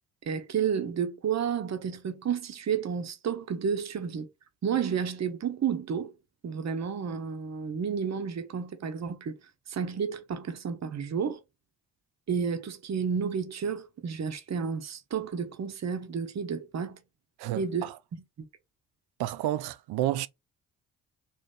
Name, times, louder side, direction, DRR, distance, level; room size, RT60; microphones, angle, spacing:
voice 1, 0.2-4.3 4.6-6.1 6.4-9.4 9.7-11.4 12.3-17.0 17.5-18.2, right 7 dB, 40° right, 0.8 m, -31 dB
voice 2, 17.4-18.0 19.2-20.3, right 14 dB, 60° right, 0.5 m, -30 dB
3.0 x 2.7 x 3.6 m
hypercardioid pair, 40°, 44 cm